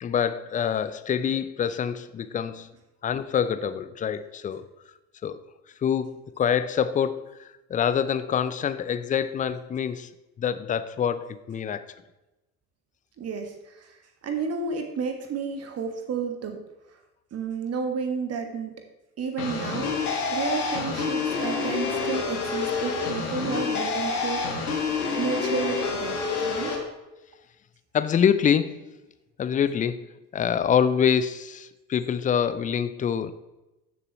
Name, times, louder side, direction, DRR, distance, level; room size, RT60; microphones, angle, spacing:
voice 1, 0.0-2.7 3.0-4.7 5.2-5.4 5.8-7.3 7.7-10.1 10.4-11.8 27.9-28.8 29.4-30.1 30.3-33.3, left 8 dB, 20° left, 13 dB, 0.5 m, -25 dB
voice 2, 13.2-13.9 14.2-16.6 17.3-18.7 19.2-24.8 25.2-26.7, right 5 dB, 35° right, 4 dB, 1.7 m, -31 dB
sound 1, 19.4-26.7, left 4 dB, 80° left, 1.7 m, -28 dB
14.5 x 6.8 x 3.1 m, 1.0 s
figure-of-eight pair, 65°, 44 cm